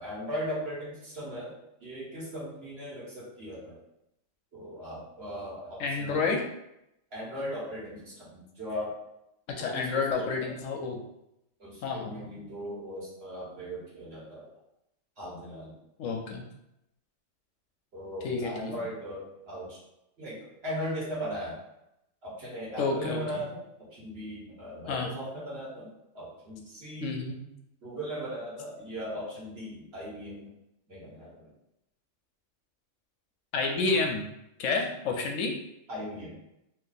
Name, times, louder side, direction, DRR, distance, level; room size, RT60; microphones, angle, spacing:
voice 1, 0.0-1.5 1.8-3.8 4.5-6.2 7.1-9.0 9.6-10.5 11.6-14.5 15.2-15.7 17.9-19.8 20.2-21.6 22.2-25.9 26.1-27.1 27.8-30.5 30.9-31.5 35.9-36.4, equal, 50° right, -7 dB, 1.5 m, -38 dB
voice 2, 5.8-6.4 9.6-11.0 11.8-12.3 16.0-16.4 18.2-18.8 22.8-23.4 24.9-25.1 27.0-27.4 33.5-34.2 34.6-35.6, left 4 dB, 75° left, 3 dB, 0.9 m, -30 dB
2.7 x 2.6 x 3.9 m, 0.84 s
omnidirectional pair, 1.4 m